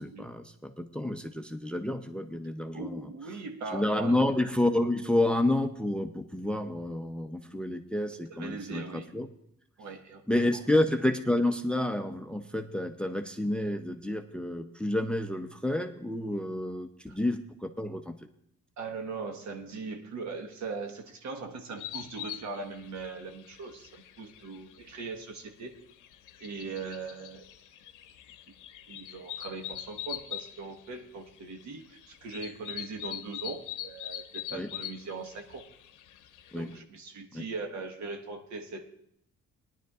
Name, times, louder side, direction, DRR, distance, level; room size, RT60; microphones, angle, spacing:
voice 1, 0.0-3.0 3.7-9.3 10.3-18.1 34.5-34.7 36.5-36.7 37.3-37.4, left 1 dB, 5° left, 8 dB, 0.6 m, -29 dB
voice 2, 2.7-4.2 8.3-9.1 9.8-10.2 10.5-10.6 17.1-17.2 18.8-25.7 26.4-27.5 28.9-35.6 36.5-39.0, right 4 dB, 70° right, 4 dB, 1.4 m, -40 dB
sound 1, 21.8-36.8, left 12 dB, 85° left, 0.7 m, -43 dB
18.5 x 10.5 x 2.4 m, 0.72 s
cardioid pair, 90°, 30 cm